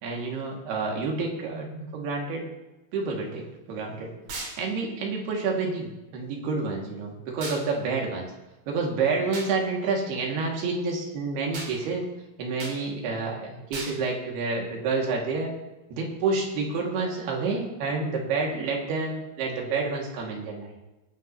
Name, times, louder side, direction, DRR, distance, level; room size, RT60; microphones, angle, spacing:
voice 1, 0.0-2.4 2.9-4.1 4.6-8.3 8.7-12.0 12.4-15.5 15.9-20.7, right 4 dB, 75° right, -1 dB, 3.8 m, -29 dB
sound 1, 4.3-4.6 7.4-7.6 9.3-9.5 11.5-11.7 12.6-12.8 13.7-14.0, right 3 dB, 55° right, 4.2 m, -36 dB
22.5 x 9.1 x 2.8 m, 1.0 s
omnidirectional pair, 4.8 m